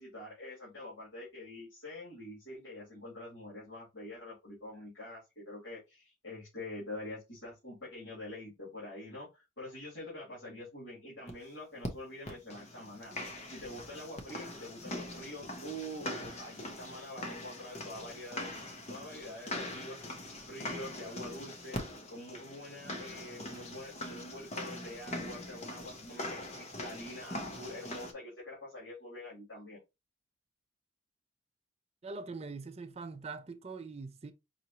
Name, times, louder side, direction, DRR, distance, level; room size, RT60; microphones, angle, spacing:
voice 1, 0.0-13.1 13.5-18.5 18.9-21.8 22.1-29.8, left 1 dB, 65° left, 2.8 m, -46 dB
sound 1, 11.3-11.4 11.8-11.9 12.3-28.1, left 1 dB, 35° left, 0.8 m, -42 dB
voice 2, 32.0-34.3, right 4 dB, 30° right, 0.4 m, -43 dB
5.5 x 2.6 x 2.9 m
head